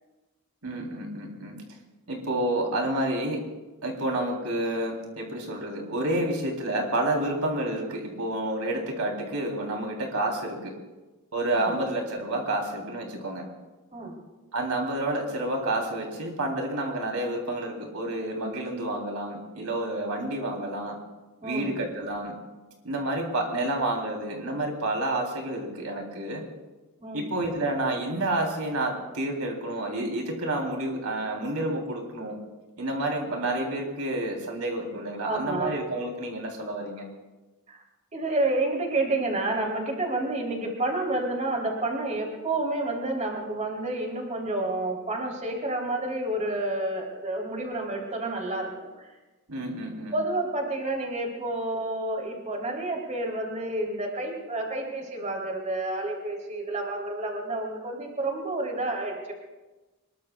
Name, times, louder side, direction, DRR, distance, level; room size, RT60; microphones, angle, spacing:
voice 1, 0.6-1.6 2.1-3.4 3.8-10.7 11.3-13.4 14.5-21.0 21.4-22.3 22.8-26.5 27.1-32.4 32.8-37.1 49.5-50.1, right 1 dB, 85° right, 1 dB, 3.4 m, -29 dB
voice 2, 21.4-21.8 27.0-27.3 35.2-35.8 37.7-37.8 38.1-49.1 50.1-59.3, right 2 dB, 35° right, 0 dB, 3.3 m, -29 dB
25.5 x 21.5 x 2.4 m, 1.2 s
head